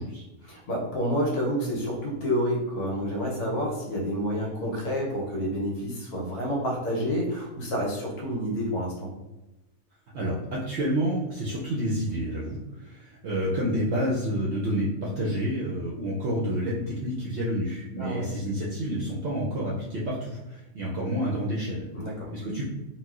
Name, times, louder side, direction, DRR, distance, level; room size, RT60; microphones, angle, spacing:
voice 1, 0.4-9.1 18.0-18.3 21.9-22.3, equal, 75° left, -2 dB, 1.4 m, -29 dB
voice 2, 10.1-21.8 22.3-22.6, equal, 70° right, -5 dB, 0.6 m, -29 dB
4.1 x 2.1 x 2.4 m, 1.0 s
omnidirectional pair, 1.6 m